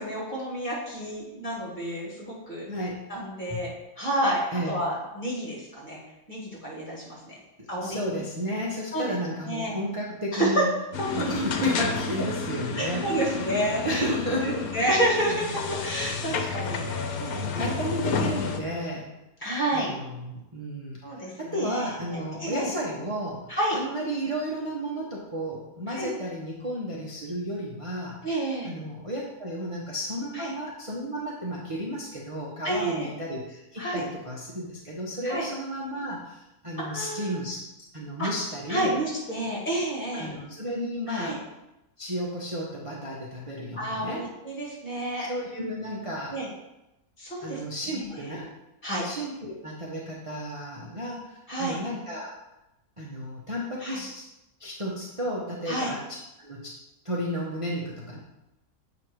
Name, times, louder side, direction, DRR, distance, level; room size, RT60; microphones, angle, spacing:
voice 1, 0.0-2.7 3.1-3.7 4.0-4.4 4.7-6.0 6.3-7.4 7.7-8.2 8.9-9.1 9.4-9.7 10.3-10.6 11.0-11.5 12.8-17.7 19.4-19.9 21.0-22.7 23.5-23.8 25.9-26.1 28.2-28.8 30.3-30.5 32.6-33.1 33.8-34.0 35.2-35.5 36.8-37.4 38.2-38.3 38.7-40.3 41.1-41.4 43.8-45.3 46.3-46.5 47.2-47.6 47.9-48.3 48.8-49.1 51.5-51.8 53.8-54.0 55.7-55.9, right 1 dB, 30° left, -5 dB, 2.9 m, -30 dB
voice 2, 2.7-3.0 3.5-3.6 4.5-4.8 7.8-10.7 11.1-14.6 15.3-15.4 17.3-19.1 19.7-23.4 23.7-28.2 28.6-37.6 37.9-39.0 40.1-41.4 42.0-44.2 45.2-46.4 47.4-48.5 49.0-52.3 53.0-54.2 54.6-56.7 57.0-58.2, equal, 25° right, -4 dB, 1.1 m, -33 dB
sound 1, 10.9-18.6, left 5 dB, 80° left, 1.3 m, -31 dB
7.9 x 5.1 x 4.7 m, 0.93 s
omnidirectional pair, 1.5 m